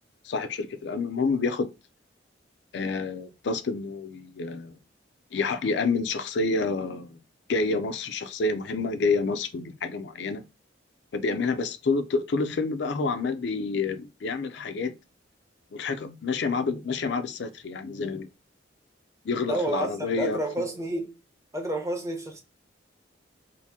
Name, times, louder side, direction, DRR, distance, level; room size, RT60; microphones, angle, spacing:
voice 1, 0.2-1.7 2.7-4.8 5.3-7.2 7.5-10.4 11.1-14.9 15.7-18.3 19.2-20.4, left 4 dB, 65° left, 0.4 m, -28 dB
voice 2, 19.5-21.2 21.5-22.4, right 1 dB, 15° right, 0.6 m, -30 dB
2.8 x 2.6 x 3.5 m
head